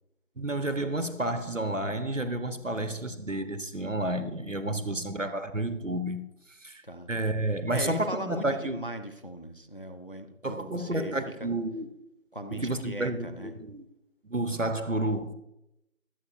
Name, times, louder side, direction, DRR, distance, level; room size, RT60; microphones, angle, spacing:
voice 1, 0.4-6.2 6.6-6.8 7.1-8.8 10.4-11.9 12.5-13.8 14.2-15.3, right 1 dB, 60° right, 1.2 m, -30 dB
voice 2, 7.7-11.5 12.3-13.5, right 1 dB, 40° left, 0.9 m, -39 dB
23.5 x 8.3 x 2.6 m
figure-of-eight pair, 175°, 42 cm